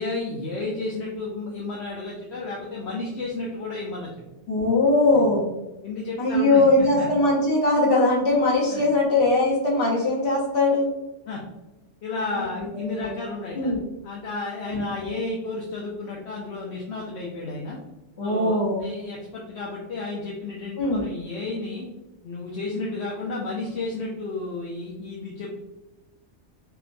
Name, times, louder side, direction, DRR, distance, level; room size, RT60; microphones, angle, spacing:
voice 1, 0.0-4.1 5.8-7.1 8.7-8.8 11.3-11.4 12.0-13.7 14.0-17.8 18.2-21.9 22.2-25.5, left 3 dB, 70° left, -3 dB, 0.9 m, -32 dB
voice 2, 4.5-5.5 6.2-10.9 12.3-13.1 13.5-13.8 14.6-15.1 18.2-18.8 20.8-21.0, left 2 dB, 55° left, -3 dB, 1.2 m, -21 dB
4.5 x 2.1 x 2.5 m, 1.0 s
omnidirectional pair, 1.2 m